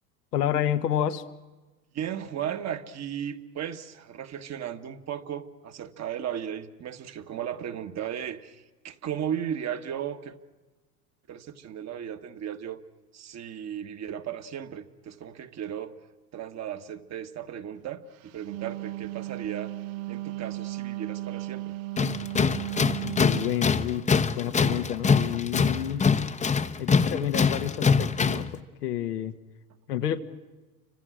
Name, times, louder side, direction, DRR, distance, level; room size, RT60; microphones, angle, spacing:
voice 1, 0.3-1.2 23.0-26.1 26.8-29.3 29.9-30.2, left 10 dB, 80° left, 7 dB, 1.6 m, -29 dB
voice 2, 1.9-10.4 11.3-12.8 13.1-15.9 16.3-19.7 20.1-21.8, right 9 dB, 35° right, 7 dB, 1.6 m, -35 dB
Wind instrument woodwind instrument, 18.3-23.6, right 18 dB, 50° right, 0.8 m, -35 dB
Tools, 22.0-28.5, left 5 dB, 15° left, 1.0 m, -24 dB
29.5 x 26.0 x 6.3 m, 1.2 s
hypercardioid pair, 90°, 47 cm